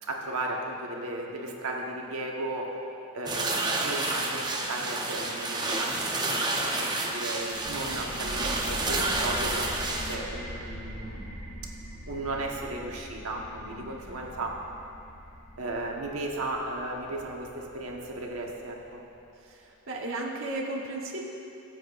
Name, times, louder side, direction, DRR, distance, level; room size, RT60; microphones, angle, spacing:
voice 1, 0.0-2.8 3.1-11.5 12.1-14.6 15.6-19.0, right 2 dB, 85° right, 0 dB, 1.3 m, -35 dB
sound 1, 3.3-10.2, right 2 dB, 20° right, 0.9 m, -30 dB
sound 2, 7.5-18.9, equal, 35° left, 1.0 m, -42 dB
voice 2, 13.7-14.3 19.4-21.3, right 2 dB, 65° right, -3 dB, 1.3 m, -36 dB
23.0 x 7.7 x 2.6 m, 2.7 s
head